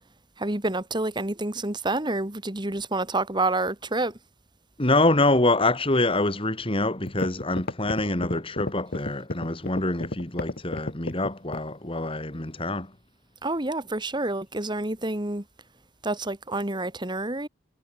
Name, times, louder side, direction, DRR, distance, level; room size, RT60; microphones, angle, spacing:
voice 1, 0.4-4.2 13.4-15.4 16.0-17.5, right 2 dB, 25° right, 2.0 m, -28 dB
voice 2, 4.8-12.9, left 2 dB, 30° left, 2.7 m, -25 dB
sound 1, 6.6-6.7 7.1-11.7, left 2 dB, 55° left, 1.5 m, -32 dB
head